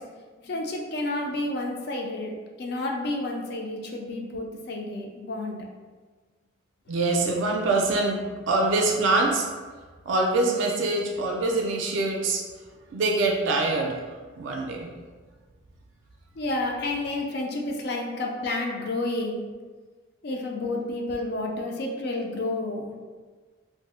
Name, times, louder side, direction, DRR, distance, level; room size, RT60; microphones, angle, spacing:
voice 1, 0.4-5.6 16.4-19.4 20.2-22.9, left 2 dB, 50° left, 1 dB, 0.4 m, -30 dB
voice 2, 6.9-8.2 8.5-9.5 10.1-12.4 12.9-14.0 14.4-14.9, right 2 dB, 65° right, 0 dB, 0.4 m, -24 dB
2.5 x 2.0 x 3.6 m, 1.4 s
head